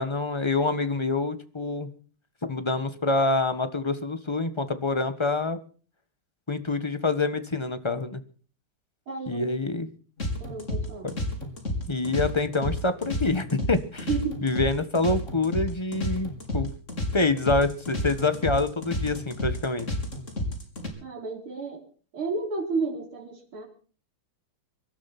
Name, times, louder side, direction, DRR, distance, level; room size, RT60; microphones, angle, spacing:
voice 1, 0.0-1.9 2.5-5.6 6.5-8.2 9.3-9.9 11.0-11.1 11.9-14.1 14.4-16.7 17.1-20.0, left 3 dB, 15° left, 10 dB, 1.2 m, -26 dB
voice 2, 9.1-9.5 10.4-11.1 14.1-14.4 21.0-21.8 22.1-23.7, right 4 dB, 80° right, 2 dB, 5.2 m, -31 dB
sound 1, 10.2-20.9, left 1 dB, 35° left, 4.2 m, -31 dB
24.0 x 12.5 x 4.3 m, 0.41 s
omnidirectional pair, 2.3 m